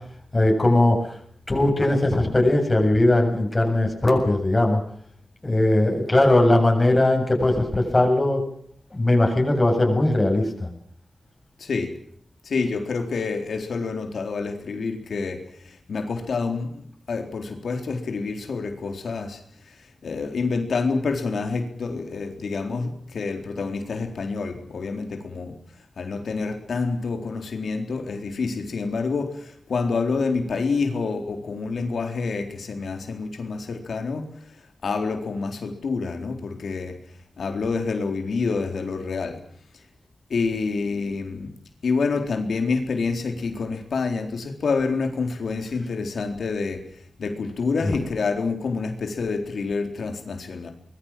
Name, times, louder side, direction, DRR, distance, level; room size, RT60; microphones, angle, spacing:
voice 1, 0.3-1.0 1.5-4.8 5.4-8.4 8.9-10.7 47.8-48.0, left 1 dB, 25° left, 3 dB, 7.9 m, -19 dB
voice 2, 11.6-11.9 12.4-16.8 17.1-19.4 20.0-25.6 26.0-34.3 34.8-37.0 37.4-39.4 40.3-41.5 41.8-46.8 47.2-50.7, left 4 dB, 85° left, 5 dB, 4.0 m, -27 dB
25.0 x 21.5 x 7.7 m, 0.63 s
wide cardioid pair, 105°, 0 cm